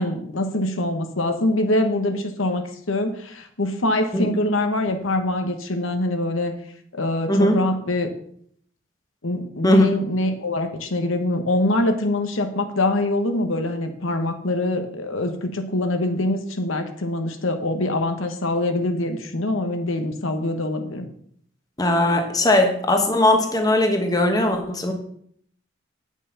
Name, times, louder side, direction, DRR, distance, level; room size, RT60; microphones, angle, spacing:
voice 1, 0.0-6.5 6.9-8.1 9.2-21.1, left 1 dB, 80° left, 6 dB, 1.2 m, -24 dB
voice 2, 21.8-24.9, left 1 dB, 20° left, 4 dB, 1.1 m, -19 dB
8.9 x 6.3 x 5.7 m, 0.64 s
head